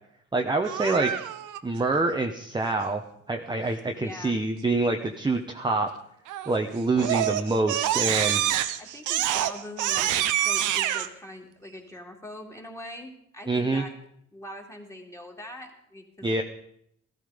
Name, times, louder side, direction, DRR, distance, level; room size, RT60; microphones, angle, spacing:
voice 1, 0.3-1.1 1.6-3.0 3.3-5.9 6.5-8.4 13.5-13.8 16.2-16.4, right 2 dB, 15° right, 3 dB, 1.0 m, -26 dB
Crying sobbing, 0.6-1.6 6.3-6.6 7.0-11.1, right 12 dB, 90° right, 0.9 m, -26 dB
voice 2, 4.0-4.4 8.8-13.9 14.3-16.4, left 1 dB, 10° left, 1 dB, 2.9 m, -42 dB
15.0 x 12.5 x 5.1 m, 0.73 s
cardioid pair, 90°, 30 cm